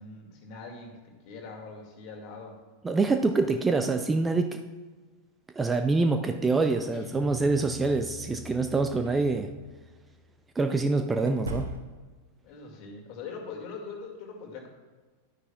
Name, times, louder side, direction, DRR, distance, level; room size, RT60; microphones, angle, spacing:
voice 1, 0.0-2.6 3.4-3.5 12.4-14.7, left 4 dB, 40° left, 1 dB, 2.0 m, -42 dB
voice 2, 2.8-4.6 5.6-9.5 10.6-11.7, right 3 dB, 15° right, 7 dB, 0.5 m, -25 dB
Guitar, 6.9-10.1, left 3 dB, 5° left, 2.4 m, -44 dB
sound 1, 9.0-9.2 11.2-12.2, right 1 dB, 70° right, 0.8 m, -38 dB
12.0 x 9.7 x 2.3 m, 1.3 s
figure-of-eight pair, 90°, 0 cm